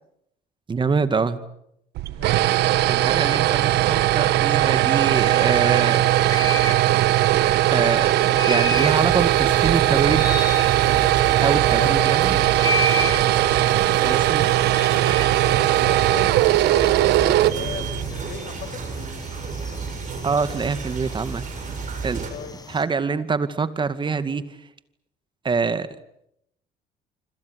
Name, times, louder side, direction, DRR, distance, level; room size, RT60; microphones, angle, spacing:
voice 1, 0.7-1.4 2.9-6.0 7.7-10.4 11.4-12.4 14.0-14.5 20.2-21.4 22.0-22.3 22.7-24.4 25.4-25.9, right 5 dB, 30° right, 12 dB, 2.2 m, -24 dB
sound 1, 2.0-18.2, right 15 dB, 80° right, 1.3 m, -19 dB
voice 2, 2.2-2.6 11.6-12.4 12.9-13.6 15.4-18.9 22.3-22.6, left 8 dB, 65° left, 11 dB, 5.6 m, -38 dB
sound 2, 5.2-22.8, left 2 dB, 25° left, 5.8 m, -34 dB
sound 3, 8.7-22.3, right 5 dB, 50° right, 7.4 m, -32 dB
27.0 x 26.0 x 8.2 m, 0.77 s
cardioid pair, 110°, 17 cm